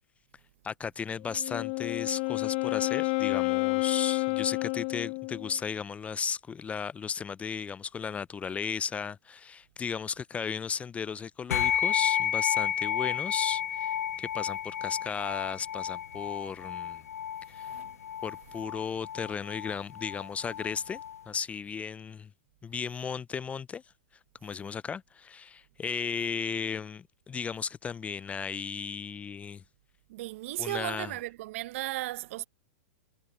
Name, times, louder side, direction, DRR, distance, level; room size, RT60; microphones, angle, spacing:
voice 1, 0.6-17.0 17.5-17.7 18.2-21.0 21.3-22.3 22.6-23.8 24.4-29.6 30.6-31.1, left 6 dB, 15° left, 0.5 m, -35 dB
Wind instrument woodwind instrument, 1.2-5.6, left 38 dB, 50° left, 1.7 m, -30 dB
sound 1, 11.5-21.2, left 9 dB, 80° left, 0.6 m, -32 dB
voice 2, 17.6-18.0 30.1-32.5, right 17 dB, 55° right, 1.0 m, -36 dB
hypercardioid pair, 115°, 8 cm